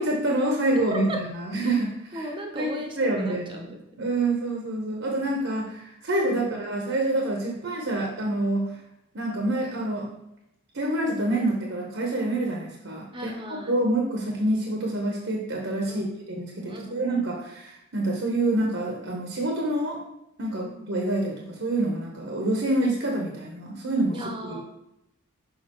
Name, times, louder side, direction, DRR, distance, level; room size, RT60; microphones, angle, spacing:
voice 1, 0.0-8.8 9.1-10.1 10.7-13.4 13.7-20.0 20.4-24.6, right 1 dB, 60° right, 0 dB, 0.9 m, -27 dB
voice 2, 2.1-3.8 6.3-6.6 13.1-13.7 15.9-16.2 16.7-17.2 20.6-20.9 24.1-24.6, equal, 25° right, 2 dB, 0.8 m, -37 dB
6.5 x 5.3 x 3.0 m, 0.85 s
head